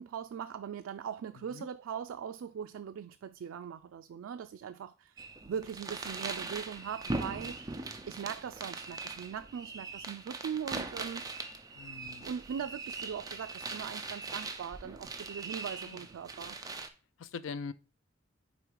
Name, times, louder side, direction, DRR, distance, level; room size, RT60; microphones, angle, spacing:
voice 1, 0.0-11.2 12.2-16.6, right 8 dB, 90° right, 0.3 m, -40 dB
sound 1, 5.2-16.9, right 3 dB, 20° right, 0.5 m, -41 dB
voice 2, 11.7-12.3 15.8-16.1 17.2-17.7, left 5 dB, 75° left, 0.4 m, -42 dB
5.1 x 4.2 x 4.6 m
head